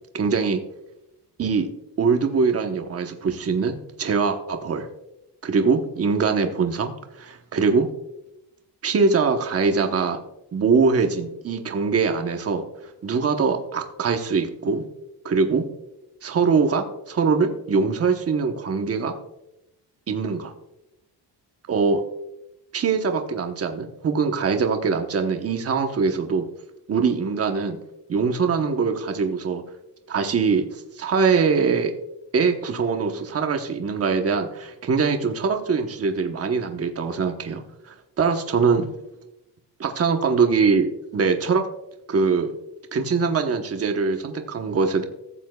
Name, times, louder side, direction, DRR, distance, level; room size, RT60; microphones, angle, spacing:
voice 1, 0.1-0.6 1.4-1.7 2.0-4.9 5.4-7.9 8.8-10.2 10.5-12.6 13.0-14.8 15.2-15.6 16.2-19.1 20.1-20.5 21.7-22.0 22.7-26.5 26.9-27.8 28.1-29.6 30.1-30.7 31.0-31.9 32.3-38.9 39.8-41.7 42.1-42.5 42.9-45.0, right 5 dB, 35° right, 5 dB, 1.0 m, -22 dB
15.0 x 7.3 x 2.3 m, 0.85 s
cardioid pair, 125°, 43 cm